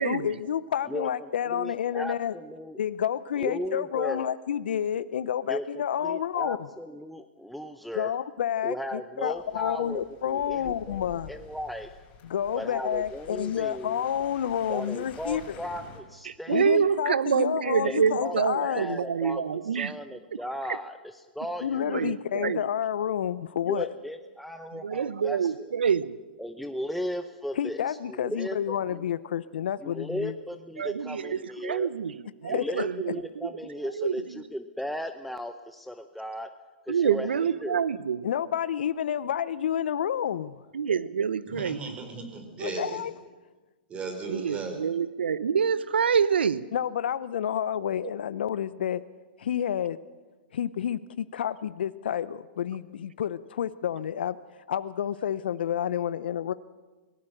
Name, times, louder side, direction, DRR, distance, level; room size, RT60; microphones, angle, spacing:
voice 1, 0.0-2.4 2.8-6.6 7.9-11.3 12.2-15.6 16.5-19.0 21.6-23.9 27.6-30.3 32.4-32.7 38.2-40.5 42.6-43.1 46.7-49.0 49.4-50.0 50.5-54.4 54.7-56.5, left 9 dB, 70° left, 16 dB, 0.7 m, -29 dB
voice 2, 0.9-2.8 3.4-4.4 5.5-8.1 8.6-11.9 12.5-14.0 14.7-16.8 17.8-19.4 19.8-22.6 23.7-25.7 26.4-28.6 28.9-29.1 29.8-31.9 32.5-36.5 36.9-38.0, equal, ahead, 7 dB, 0.8 m, -36 dB
sound 1, 9.3-16.0, left 6 dB, 35° left, 6.2 m, -50 dB
voice 3, 16.3-19.9 21.8-22.6 24.8-26.2 30.8-32.1 32.4-33.2 33.9-34.2 36.9-38.3 40.7-42.0 44.3-46.6, right 7 dB, 80° right, 17 dB, 0.9 m, -26 dB
voice 4, 41.5-43.0 43.9-44.8, right 4 dB, 20° right, 5 dB, 4.5 m, -36 dB
24.5 x 18.0 x 6.7 m, 1.2 s
hypercardioid pair, 120°, 6 cm